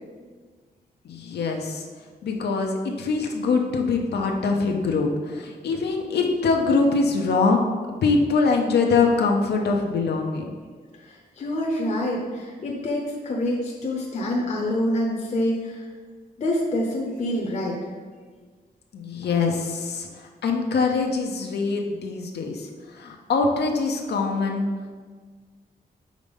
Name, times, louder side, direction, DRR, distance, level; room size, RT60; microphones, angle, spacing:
voice 1, 1.0-1.8 2.2-7.6 8.0-10.5 18.9-24.7, left 4 dB, 90° left, 1 dB, 0.7 m, -23 dB
voice 2, 11.0-15.9 16.4-17.8, left 1 dB, 45° left, -2 dB, 0.8 m, -26 dB
5.1 x 4.1 x 5.3 m, 1.5 s
wide cardioid pair, 175°, 17 cm